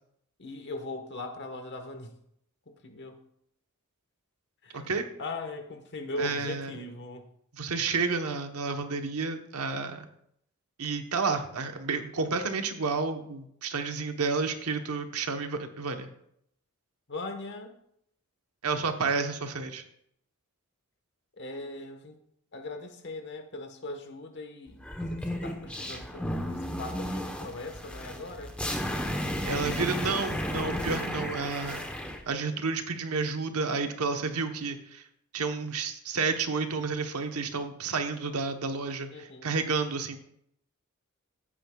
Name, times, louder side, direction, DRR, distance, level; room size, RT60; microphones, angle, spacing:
voice 1, 0.4-2.1 2.7-3.2 4.6-4.9 5.2-7.2 17.1-17.7 21.4-22.2 22.5-28.5 39.1-39.5, left 2 dB, 50° left, 6 dB, 1.3 m, -39 dB
voice 2, 4.7-5.0 6.2-6.8 7.5-10.1 10.8-16.1 18.6-19.8 29.5-31.9 32.3-35.0 35.3-40.2, right 4 dB, 90° right, 6 dB, 1.0 m, -30 dB
sound 1, 24.8-32.2, equal, 5° left, 0.9 m, -33 dB
15.0 x 8.7 x 2.3 m, 0.73 s
head